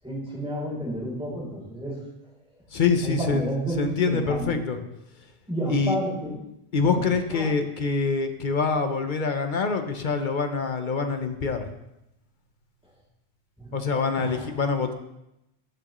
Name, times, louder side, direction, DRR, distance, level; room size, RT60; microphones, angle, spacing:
voice 1, 0.0-2.1 3.0-4.5 5.5-6.4 6.9-7.0 7.3-7.5 13.6-13.7 14.2-14.5, right 1 dB, 5° right, -5 dB, 3.3 m, -31 dB
voice 2, 2.7-4.8 5.7-6.0 6.7-11.7 13.7-14.9, left 5 dB, 50° left, 7 dB, 0.9 m, -25 dB
13.5 x 6.2 x 3.0 m, 0.88 s
omnidirectional pair, 1.1 m